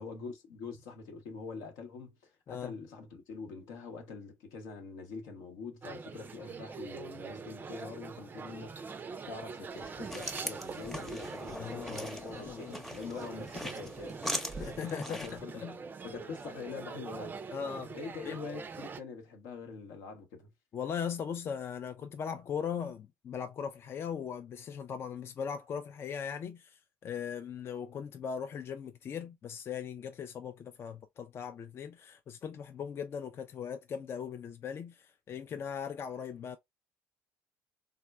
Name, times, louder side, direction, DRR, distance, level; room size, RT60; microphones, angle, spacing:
voice 1, 0.0-2.2 2.5-14.6 15.1-15.7 16.0-17.4 17.9-20.5, left 4 dB, 75° left, 0.8 m, -44 dB
sound 1, 5.8-19.0, right 5 dB, 30° right, 0.4 m, -44 dB
sound 2, 9.7-15.4, equal, 5° left, 0.7 m, -41 dB
voice 2, 11.5-12.8 14.6-15.8 17.5-18.0 18.3-18.4 20.7-36.6, left 7 dB, 45° left, 0.3 m, -39 dB
3.5 x 2.1 x 2.3 m
supercardioid pair, 70°, 6 cm